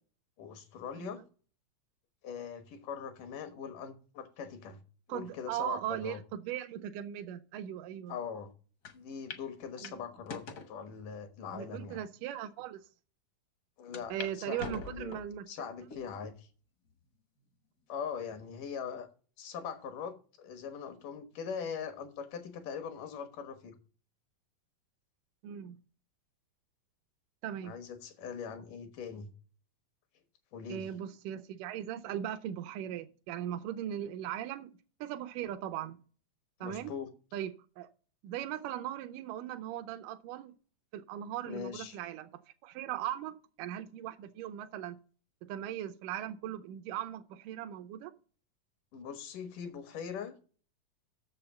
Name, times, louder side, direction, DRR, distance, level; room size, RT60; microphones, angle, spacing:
voice 1, 0.4-1.2 2.2-4.8 5.1-6.2 8.1-8.5 8.9-12.0 13.8-15.2 15.5-16.5 17.9-19.1 19.4-23.7 27.6-29.3 30.5-30.9 36.6-37.1 41.5-42.0 48.9-50.3, left 7 dB, 80° left, 2.9 m, -41 dB
voice 2, 5.1-8.2 9.8-10.0 11.5-12.8 14.1-15.5 25.4-25.8 27.4-27.8 30.7-34.7 35.0-36.0 36.6-36.9 37.3-37.9 38.2-40.5 40.9-45.0 45.4-48.1, right 11 dB, 90° right, 2.2 m, -39 dB
sound 1, 8.8-8.9 9.3-9.4 9.8-10.7 11.4-11.5 12.2-12.3 12.6-12.7 13.9-14.3 14.6-15.4 15.9-16.3 16.9-17.0 18.1-18.5, left 4 dB, 60° left, 1.0 m, -44 dB
7.0 x 6.7 x 6.9 m
omnidirectional pair, 3.6 m